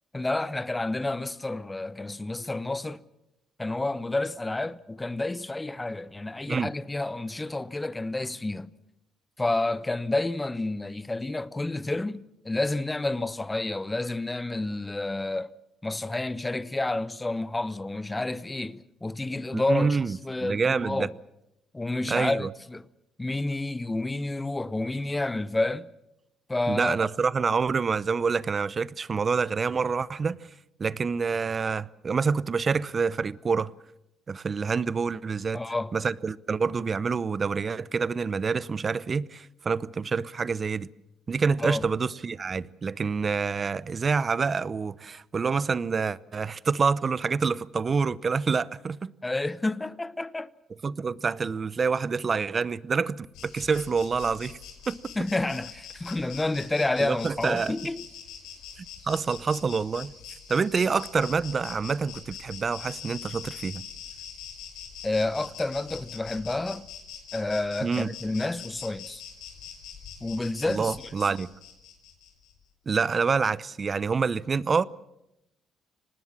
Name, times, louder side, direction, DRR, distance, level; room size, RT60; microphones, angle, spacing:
voice 1, 0.1-3.0 3.6-8.7 9.4-15.5 15.8-21.1 21.7-22.8 23.2-25.9 26.5-27.0 35.5-35.9 41.6-41.8 49.2-50.5 55.2-58.0 65.0-66.9 67.3-69.2 70.2-71.0, left 2 dB, 15° left, 0.9 m, -29 dB
voice 2, 19.5-21.1 22.1-22.5 26.7-30.4 30.8-33.7 34.3-35.6 35.9-40.9 41.3-49.1 50.8-54.6 54.9-55.1 57.0-57.7 58.8-60.1 60.5-63.8 67.8-68.1 70.7-71.5 72.9-74.9, right 5 dB, 40° right, 0.7 m, -27 dB
Insect, 53.3-72.5, left 8 dB, 80° left, 5.5 m, -44 dB
25.5 x 19.5 x 7.4 m
supercardioid pair, 65°, 0 cm